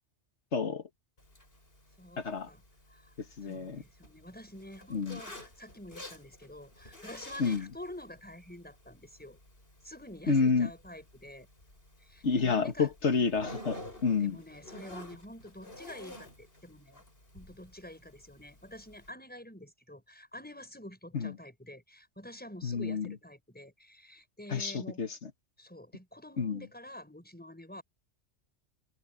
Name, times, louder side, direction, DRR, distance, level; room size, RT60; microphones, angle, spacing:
voice 1, 0.5-0.8 2.2-2.5 3.4-3.8 4.9-5.2 7.4-7.6 10.3-10.7 12.2-14.4 21.1-21.3 22.6-23.1 24.5-25.1 26.4-26.6, left 5 dB, 70° left, 1.9 m, -29 dB
Zipper (clothing), 1.2-19.1, left 1 dB, 55° left, 6.2 m, -51 dB
voice 2, 2.0-2.6 2.9-3.1 3.4-9.4 9.8-11.5 12.0-12.9 14.2-17.0 17.3-25.0 25.6-27.8, left 1 dB, 10° left, 5.6 m, -48 dB
omnidirectional pair, 1.2 m